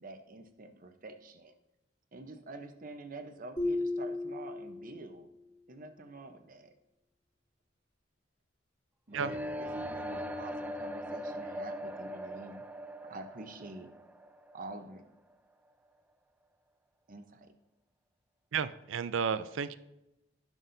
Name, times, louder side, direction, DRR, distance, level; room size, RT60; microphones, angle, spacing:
voice 1, 0.0-1.5 2.1-5.3 5.7-6.7 9.1-9.4 9.8-12.6 13.1-13.9 14.5-15.0 17.1-17.5, right 2 dB, 45° right, 7 dB, 0.8 m, -47 dB
sound 1, 3.6-5.3, left 2 dB, 20° left, 3.4 m, -34 dB
sound 2, 9.1-15.0, equal, 10° right, 0.3 m, -40 dB
voice 2, 18.5-19.8, right 6 dB, 75° right, 14 dB, 0.4 m, -32 dB
15.0 x 6.1 x 2.7 m, 0.91 s
head